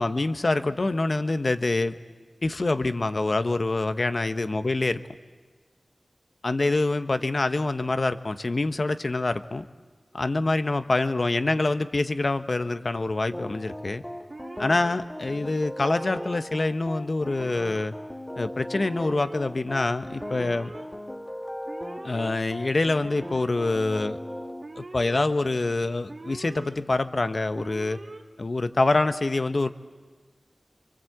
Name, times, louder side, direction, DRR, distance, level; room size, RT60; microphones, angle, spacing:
voice 1, 0.0-2.0 2.4-5.0 6.4-9.7 10.1-14.0 14.6-17.9 18.3-20.7 22.0-24.2 24.8-28.0 28.4-29.7, left 2 dB, 55° left, 10 dB, 1.1 m, -25 dB
sound 1, 13.3-24.6, equal, 15° left, 1.5 m, -38 dB
Alarm, 14.3-14.9 15.8-16.4 17.2-17.9 18.7-19.4 20.2-20.8 21.6-22.3 23.1-23.8 24.6-25.3 26.1-26.7 27.5-28.2, right 2 dB, 55° right, 2.4 m, -42 dB
29.5 x 24.0 x 7.9 m, 1.4 s
cardioid pair, 45°, 0 cm